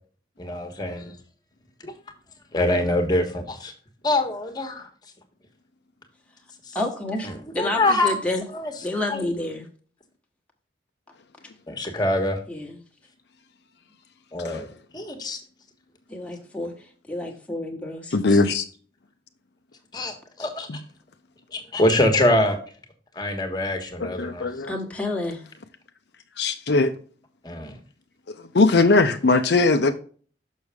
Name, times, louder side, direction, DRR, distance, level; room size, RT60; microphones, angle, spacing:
voice 1, 0.4-1.1 1.8-1.9 2.5-3.7 4.0-4.9 6.7-6.8 7.2-8.1 8.5-8.7 9.1-9.2 11.7-12.4 14.3-14.7 14.9-15.4 18.3-18.4 19.9-20.8 21.5-22.6 23.1-24.5 27.4-27.8, left 1 dB, 20° left, 1.3 m, -24 dB
voice 2, 6.7-8.4 8.8-9.7 12.5-12.8 16.1-18.2 24.7-25.4, left 2 dB, 5° left, 1.2 m, -29 dB
voice 3, 18.1-18.6 20.7-20.8 24.0-24.7 26.4-26.9 28.5-29.9, left 3 dB, 65° left, 0.6 m, -20 dB
6.4 x 6.2 x 3.5 m
head